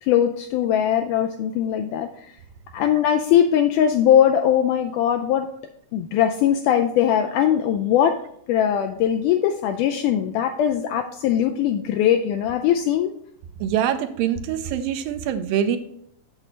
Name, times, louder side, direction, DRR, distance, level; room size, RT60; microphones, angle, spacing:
voice 1, 0.0-2.3 2.7-5.5 5.9-8.2 8.5-13.1, left 9 dB, 85° left, 5 dB, 1.8 m, -20 dB
voice 2, 13.6-15.8, right 9 dB, 85° right, 8 dB, 2.4 m, -24 dB
7.7 x 7.3 x 3.2 m, 0.70 s
omnidirectional pair, 4.1 m